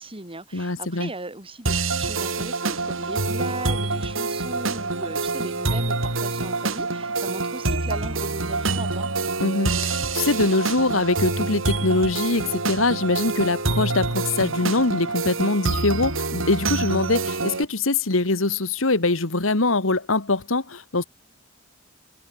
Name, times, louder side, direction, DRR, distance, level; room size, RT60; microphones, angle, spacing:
voice 1, 0.0-9.1, right 2 dB, 30° right, 5.9 m, -37 dB
voice 2, 0.5-1.1 9.4-21.0, left 2 dB, 90° left, 2.0 m, -23 dB
sound 1, 1.7-17.7, right 3 dB, 90° right, 3.9 m, -26 dB
head